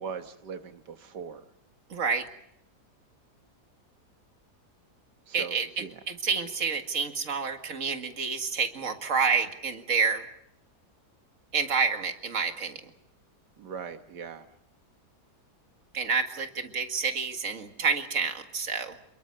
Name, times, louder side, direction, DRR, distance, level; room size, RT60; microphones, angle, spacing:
voice 1, 0.0-1.4 5.3-5.5 5.8-5.9 13.6-14.5, right 6 dB, 90° right, 7 dB, 1.9 m, -39 dB
voice 2, 1.9-2.3 5.3-10.2 11.5-12.8 15.9-19.0, right 5 dB, 50° right, 6 dB, 2.3 m, -28 dB
28.5 x 22.0 x 6.6 m, 0.76 s
omnidirectional pair, 1.7 m